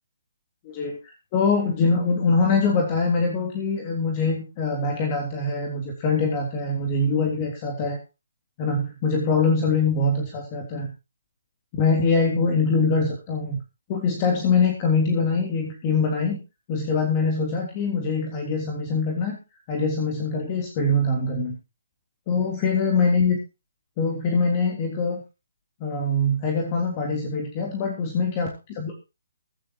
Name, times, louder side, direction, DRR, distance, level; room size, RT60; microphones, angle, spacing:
voice 1, 0.6-8.0 8.6-10.9 11.7-13.6 13.9-16.4 16.7-19.4 19.7-21.6 22.3-23.4 24.0-25.2 25.8-28.9, left 3 dB, 25° left, 1 dB, 3.3 m, -23 dB
23.0 x 8.9 x 3.0 m, 0.28 s
figure-of-eight pair, 140°, 0 cm